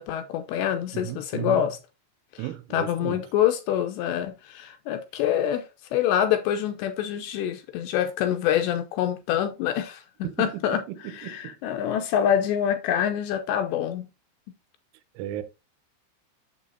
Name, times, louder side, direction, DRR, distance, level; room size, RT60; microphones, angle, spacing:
voice 1, 0.0-1.7 2.7-5.7 5.9-10.0 10.4-10.8 11.2-14.1, left 10 dB, 85° left, 2.7 m, -26 dB
voice 2, 0.9-1.6 2.4-3.2 10.2-11.6 15.2-15.4, right 13 dB, 85° right, 3.2 m, -35 dB
8.5 x 7.6 x 2.8 m
omnidirectional pair, 5.6 m